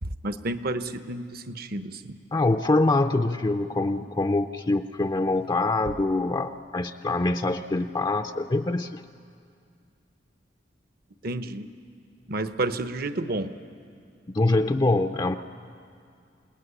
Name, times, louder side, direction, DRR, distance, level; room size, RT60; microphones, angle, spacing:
voice 1, 0.0-2.2 11.2-11.7 12.3-13.5, right 2 dB, 55° right, 11 dB, 1.0 m, -30 dB
voice 2, 2.3-9.0 14.3-15.4, left 2 dB, 25° left, 7 dB, 0.5 m, -24 dB
28.5 x 18.5 x 9.9 m, 2.3 s
head